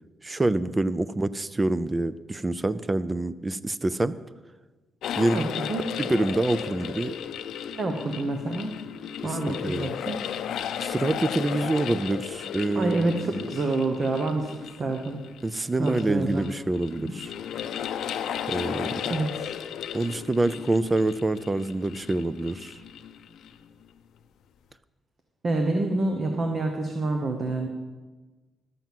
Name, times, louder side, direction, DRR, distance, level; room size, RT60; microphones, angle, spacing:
voice 1, 0.2-4.2 5.2-5.5 6.0-7.2 9.2-9.9 10.8-13.5 15.4-17.3 18.5-19.0 19.9-22.7, right 2 dB, 15° right, 16 dB, 0.3 m, -26 dB
sound 1, 5.0-23.6, left 9 dB, 75° left, 0.5 m, -35 dB
voice 2, 7.7-8.7 9.2-10.2 12.7-15.2 15.8-16.4 16.9-17.1 19.1-19.5 25.4-27.7, right 2 dB, 35° right, 3 dB, 0.9 m, -27 dB
12.0 x 6.0 x 7.3 m, 1.3 s
cardioid pair, 165°, 0 cm